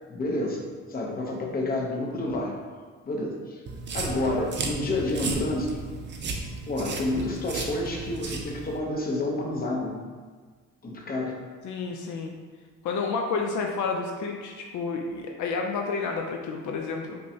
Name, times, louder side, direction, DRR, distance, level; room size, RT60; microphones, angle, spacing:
voice 1, 0.1-2.6 3.1-3.6 3.9-5.8 6.7-10.0 10.8-11.4, left 2 dB, 30° left, -1 dB, 0.7 m, -29 dB
sound 1, 3.7-8.8, right 3 dB, 40° right, 0.5 m, -34 dB
voice 2, 11.6-12.3 12.8-17.2, left 4 dB, 75° left, 2 dB, 0.5 m, -30 dB
5.1 x 2.2 x 2.7 m, 1.5 s
cardioid pair, 90°, 30 cm